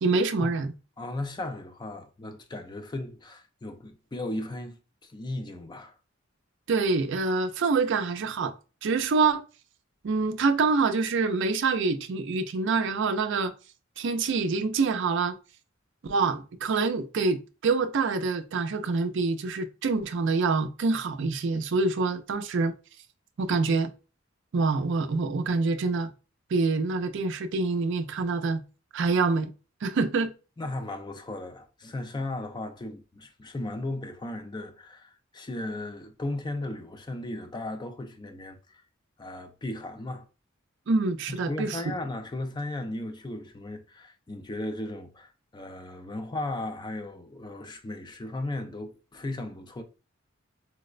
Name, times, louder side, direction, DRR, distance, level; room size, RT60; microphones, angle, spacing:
voice 1, 0.0-0.7 6.7-8.5 8.8-9.4 10.0-13.5 14.0-15.4 16.0-22.7 23.4-23.9 24.5-26.1 26.5-28.6 28.9-29.5 29.8-30.3 40.9-41.8, right 4 dB, 60° right, 0.4 m, -26 dB
voice 2, 1.0-4.8 5.0-5.9 30.6-38.8 39.2-40.3 41.3-49.8, left 2 dB, 20° left, 0.4 m, -36 dB
4.5 x 2.1 x 2.4 m
head